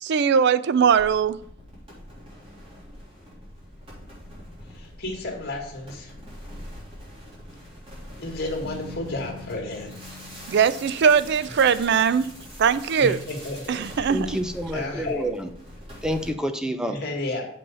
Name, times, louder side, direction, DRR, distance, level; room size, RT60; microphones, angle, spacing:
voice 1, 0.0-1.4 10.5-12.3 12.6-13.2 13.7-14.4, right 7 dB, 60° right, 0.4 m, -20 dB
sound 1, 0.8-16.3, equal, 30° right, 3.4 m, -43 dB
voice 2, 4.7-6.1 7.2-7.3 8.2-10.3 13.0-14.1 14.7-15.3 16.9-17.5, left 2 dB, 55° left, 2.1 m, -32 dB
Bass guitar, 8.6-12.7, left 3 dB, 90° right, 1.2 m, -44 dB
voice 3, 14.1-15.5 16.0-17.0, equal, 5° right, 0.6 m, -28 dB
7.1 x 5.5 x 5.5 m
head